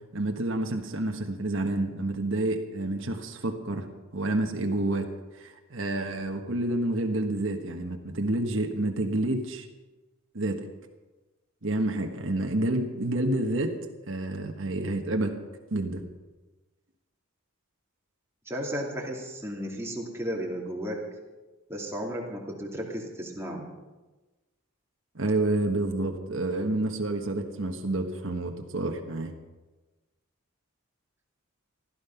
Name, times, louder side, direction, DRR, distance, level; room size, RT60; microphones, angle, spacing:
voice 1, 0.1-3.9 4.1-5.1 5.3-9.7 10.3-10.7 11.6-13.8 14.1-15.3 15.7-16.0 25.1-29.3, right 2 dB, 60° right, 3 dB, 1.4 m, -29 dB
voice 2, 18.5-21.0 21.7-23.7, equal, 10° right, -2 dB, 2.6 m, -34 dB
16.0 x 13.0 x 5.8 m, 1.2 s
head